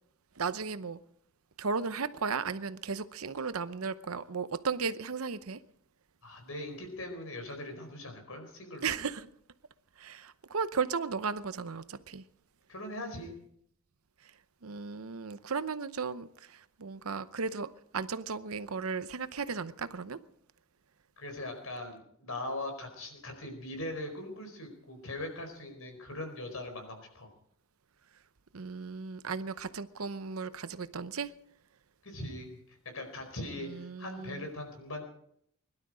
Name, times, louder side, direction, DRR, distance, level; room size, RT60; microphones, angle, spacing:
voice 1, 0.4-1.0 1.6-5.6 8.8-9.3 10.0-12.2 14.2-14.3 14.6-20.2 28.5-31.3 33.6-34.5, right 5 dB, 80° right, 0.8 m, -35 dB
voice 2, 6.2-8.9 12.7-13.3 21.2-27.3 32.0-35.0, left 1 dB, 75° left, 4.7 m, -41 dB
21.5 x 12.0 x 5.0 m
head